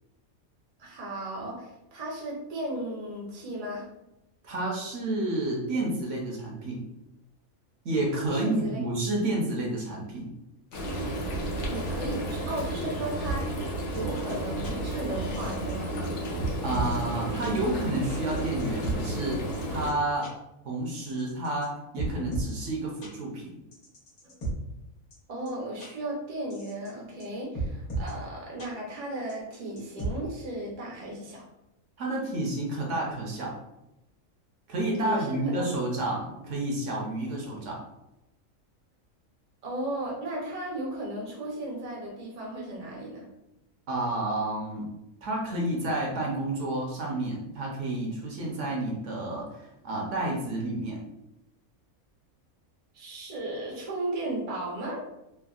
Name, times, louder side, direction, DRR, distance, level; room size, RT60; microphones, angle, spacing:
voice 1, 0.8-3.9 8.3-8.8 11.7-13.6 13.8-15.9 24.2-24.3 25.3-31.4 35.0-35.6 39.6-43.3 52.9-55.0, right 1 dB, 45° right, -3 dB, 0.5 m, -35 dB
voice 2, 4.4-6.8 7.8-10.3 16.6-20.3 20.6-23.6 32.0-33.6 34.7-37.8 43.9-44.9 45.2-51.0, right 1 dB, 65° right, -1 dB, 0.9 m, -30 dB
Frying (food), 10.7-19.9, right 1 dB, 60° left, 0.7 m, -32 dB
sound 1, 13.2-13.4 13.9-14.0 14.3-14.4 14.6-14.7 15.3-15.7 16.0-16.1 16.4-17.0 17.4-17.5 18.1-18.9 19.5-19.6 19.9-20.0 20.2-20.3 20.9-21.7 22.0-22.5 23.0-23.1 23.7-24.5 25.1-25.2 25.5-25.6 25.8-25.9 26.5-26.9 27.2-27.3 27.5-28.1 28.6-28.7 29.3-30.1, right 3 dB, 90° left, 1.4 m, -33 dB
3.3 x 2.1 x 2.3 m, 0.89 s
omnidirectional pair, 1.5 m